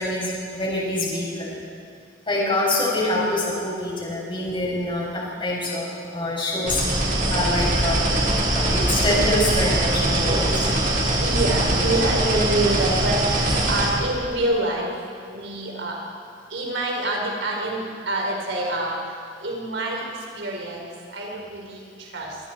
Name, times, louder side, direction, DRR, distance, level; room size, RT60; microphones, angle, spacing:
voice 1, 0.0-1.5 2.3-8.0 8.5-10.5, left 1 dB, 30° left, -5 dB, 7.7 m, -25 dB
sound 1, 6.6-13.9, right 1 dB, 50° right, 5.0 m, -22 dB
voice 2, 11.2-14.9 15.3-16.0 16.5-19.0 19.4-22.4, right 1 dB, 75° right, -1 dB, 4.6 m, -26 dB
26.5 x 25.5 x 4.7 m, 2.3 s
head